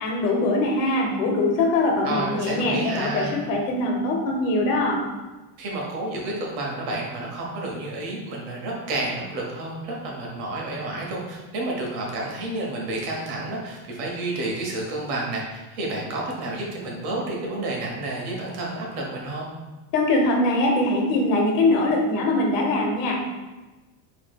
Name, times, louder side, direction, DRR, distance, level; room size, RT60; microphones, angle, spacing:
voice 1, 0.0-5.0 19.9-23.2, left 2 dB, 90° left, 0 dB, 1.1 m, -22 dB
voice 2, 2.0-3.3 5.6-19.5, right 2 dB, 55° right, -2 dB, 1.1 m, -30 dB
4.7 x 3.2 x 2.3 m, 1.2 s
cardioid pair, 160°, 47 cm